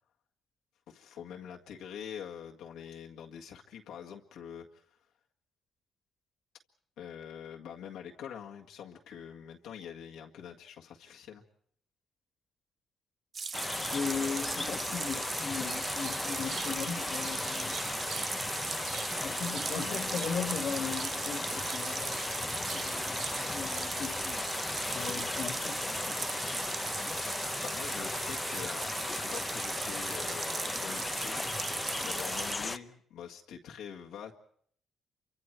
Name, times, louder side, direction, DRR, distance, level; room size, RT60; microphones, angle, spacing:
voice 1, 0.9-4.8 7.0-11.4 19.7-20.7 27.6-28.9 29.2-31.5 32.0-34.3, left 8 dB, 85° left, 1.9 m, -45 dB
sound 1, 13.3-32.5, right 5 dB, 45° right, 1.0 m, -38 dB
sound 2, 13.5-32.8, left 3 dB, 25° left, 0.8 m, -36 dB
voice 2, 13.9-17.8 19.2-24.4 24.9-26.2, left 6 dB, 60° left, 2.0 m, -38 dB
sound 3, 15.8-24.2, right 6 dB, 65° right, 2.4 m, -47 dB
28.0 x 24.5 x 4.7 m
cardioid pair, 90°, 0 cm